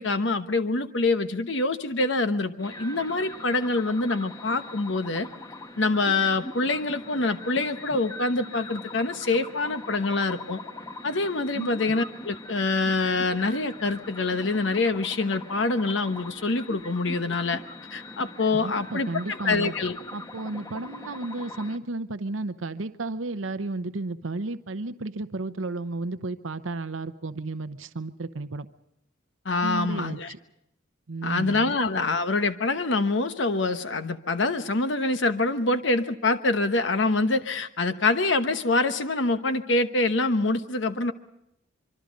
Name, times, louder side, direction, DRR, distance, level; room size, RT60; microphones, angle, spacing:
voice 1, 0.0-5.3 5.8-10.6 11.0-17.6 17.9-19.1 19.4-20.0 29.4-30.3 31.2-41.1, left 3 dB, 70° left, 9 dB, 1.0 m, -25 dB
sound 1, 2.6-21.8, left 2 dB, 20° left, 1.1 m, -41 dB
voice 2, 11.5-11.9 18.5-19.7 20.1-28.7 29.6-30.4 31.1-31.7, right 2 dB, 85° right, 11 dB, 0.8 m, -33 dB
25.0 x 24.5 x 5.3 m, 0.81 s
head